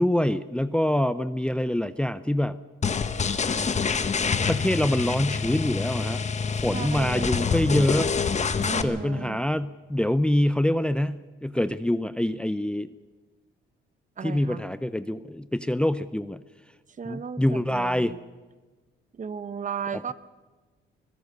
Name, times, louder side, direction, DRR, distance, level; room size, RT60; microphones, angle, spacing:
voice 1, 0.0-2.6 4.5-6.2 6.6-8.1 8.8-12.9 14.2-16.4 17.1-18.1, left 1 dB, 5° left, 14 dB, 0.6 m, -25 dB
sound 1, 2.8-8.8, left 5 dB, 35° left, 1.2 m, -26 dB
voice 2, 6.7-7.5 8.6-9.4 14.2-14.6 17.0-18.2 19.1-20.1, right 6 dB, 40° right, 14 dB, 1.0 m, -35 dB
25.0 x 17.0 x 6.7 m, 1.2 s
cardioid pair, 90°, 20 cm